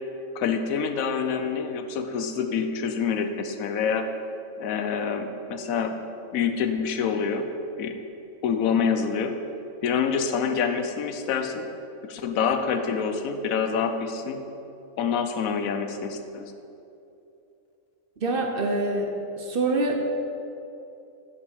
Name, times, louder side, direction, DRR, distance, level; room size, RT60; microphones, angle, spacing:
voice 1, 0.3-4.1 4.6-6.0 6.3-7.5 7.8-7.9 8.4-9.4 9.8-11.7 12.0-14.4 15.0-16.5, left 6 dB, 90° left, 7 dB, 1.1 m, -26 dB
voice 2, 18.2-20.1, right 2 dB, 50° right, 3 dB, 0.9 m, -26 dB
7.9 x 5.4 x 6.4 m, 2.8 s
omnidirectional pair, 1.4 m